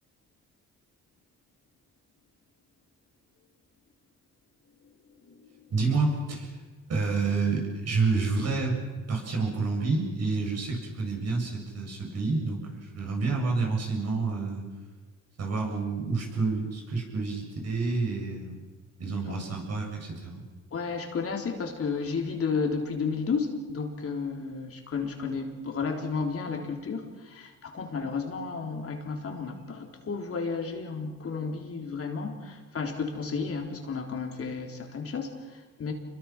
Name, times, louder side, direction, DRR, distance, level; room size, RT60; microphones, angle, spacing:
voice 1, 5.1-5.6 20.7-35.9, left 5 dB, 50° left, 2 dB, 3.8 m, -32 dB
voice 2, 5.7-6.5 6.9-8.8 9.1-14.7 15.4-18.6 19.0-20.4, right 3 dB, 55° right, 1 dB, 7.4 m, -29 dB
27.5 x 22.5 x 6.1 m, 1.3 s
cardioid pair, 90°, 30 cm